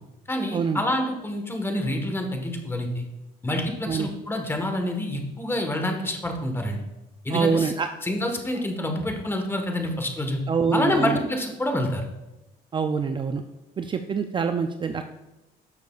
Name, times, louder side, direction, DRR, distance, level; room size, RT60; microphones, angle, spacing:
voice 1, 0.3-3.1 3.4-6.8 7.2-7.7 8.0-10.4 10.7-12.0, left 1 dB, 15° left, 4 dB, 1.4 m, -27 dB
voice 2, 7.3-7.9 10.5-11.2 12.7-13.4 13.8-15.1, right 5 dB, 30° right, 7 dB, 0.4 m, -25 dB
11.5 x 6.6 x 2.4 m, 0.97 s
cardioid pair, 110°, 17 cm